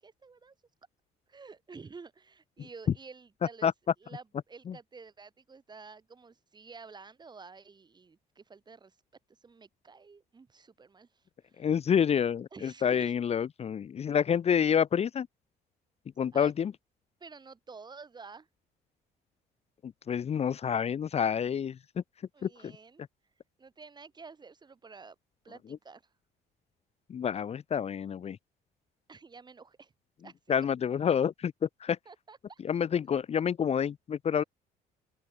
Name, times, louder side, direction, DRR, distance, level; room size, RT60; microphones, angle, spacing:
voice 1, 0.0-0.5 1.3-3.7 4.0-9.0 9.3-11.7 12.5-13.1 16.3-16.5 17.2-18.5 22.3-23.0 23.6-25.1 25.4-26.1 29.1-29.9 30.2-30.6 32.0-32.6, right 4 dB, 25° right, 3.2 m, -50 dB
voice 2, 11.6-15.3 16.2-16.7 19.8-21.8 22.4-22.7 27.1-28.4 30.5-32.0 32.6-34.4, left 8 dB, 40° left, 0.9 m, -28 dB
open air
cardioid pair, 110°, 17 cm